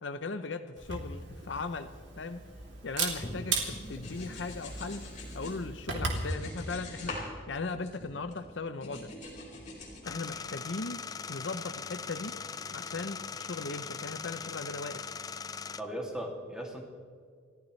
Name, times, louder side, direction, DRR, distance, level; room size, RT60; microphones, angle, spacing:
voice 1, 0.0-1.9 2.2-2.4 2.8-5.1 5.3-7.2 7.5-9.1 10.1-11.0 11.3-12.3 12.7-15.1, left 3 dB, 60° left, 10 dB, 0.7 m, -38 dB
Camera, 0.8-6.3, right 4 dB, 60° right, 2.8 m, -37 dB
sound 1, 3.2-5.6 6.0-7.3 7.6-8.4 8.8-10.0, left 2 dB, 35° left, 4.6 m, -43 dB
sound 2, 10.0-15.8, left 6 dB, 20° left, 0.3 m, -40 dB
voice 2, 15.8-16.8, right 1 dB, 5° right, -1 dB, 2.4 m, -37 dB
30.0 x 14.0 x 3.2 m, 2.1 s
head